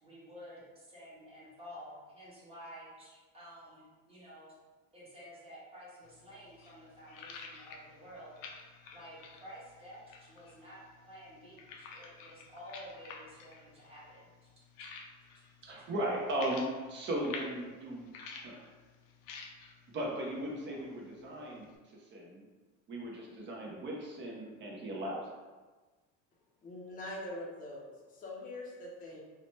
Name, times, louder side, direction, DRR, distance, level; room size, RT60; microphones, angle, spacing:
voice 1, 0.0-4.5 4.9-8.3 8.9-14.3 15.8-15.9, equal, 20° right, -8 dB, 1.0 m, -51 dB
sound 1, 6.0-21.8, left 5 dB, 85° left, 0.5 m, -51 dB
voice 2, 15.6-18.1 18.4-18.6 19.9-21.7 22.1-22.4 22.9-25.3, right 1 dB, 35° right, -2 dB, 0.6 m, -37 dB
voice 3, 26.6-29.2, left 1 dB, 25° left, -4 dB, 0.5 m, -43 dB
2.9 x 2.1 x 2.9 m, 1.3 s
cardioid pair, 140°, 33 cm